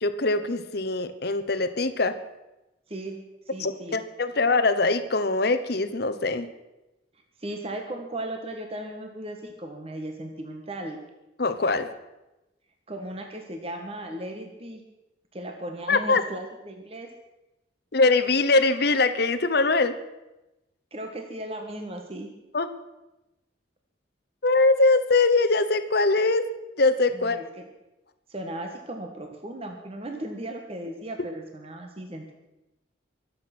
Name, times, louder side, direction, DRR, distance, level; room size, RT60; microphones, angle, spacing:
voice 1, 0.0-2.1 3.6-6.5 11.4-11.9 15.9-16.2 17.9-20.0 22.5-22.7 24.4-26.5 26.8-27.4, left 3 dB, 55° left, 11 dB, 1.0 m, -22 dB
voice 2, 3.5-4.0 7.4-11.0 12.9-14.8 15.3-17.1 20.9-22.3 27.1-27.6 28.3-32.3, right 1 dB, 30° right, 3 dB, 1.5 m, -36 dB
23.5 x 8.1 x 6.0 m, 0.99 s
head